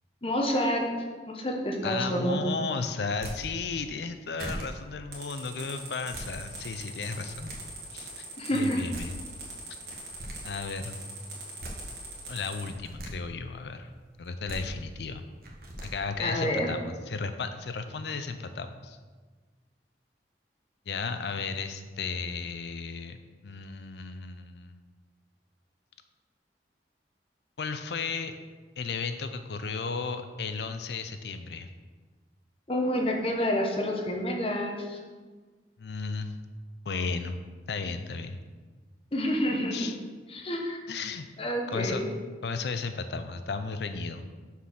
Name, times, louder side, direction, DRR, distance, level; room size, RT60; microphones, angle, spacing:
voice 1, 0.2-0.9 1.3-2.4 8.4-8.8 16.2-16.7 32.7-35.0 39.1-39.7 40.3-40.8 41.4-42.1, equal, 30° left, 1 dB, 1.1 m, -28 dB
voice 2, 1.8-7.5 7.9-8.3 8.5-9.1 10.4-10.9 12.3-13.9 14.2-15.2 15.8-19.0 20.9-23.2 23.4-24.7 27.6-28.3 28.8-31.7 35.8-36.3 36.9-37.4 37.7-38.4 39.7-40.0 40.9-41.3 41.7-42.0 42.4-44.3, left 4 dB, 75° left, 9 dB, 0.5 m, -34 dB
sound 1, 3.1-3.4 4.0-4.1 4.4-4.7 5.9-6.3 7.0-7.6 8.6-8.7 8.9-9.1 9.9-10.4 11.3-11.8 12.6-13.1 14.2-14.6 15.4-15.9, right 1 dB, 55° right, 1.5 m, -39 dB
sound 2, 5.1-12.7, right 3 dB, 80° right, 2.4 m, -42 dB
6.7 x 4.7 x 6.4 m, 1.4 s
head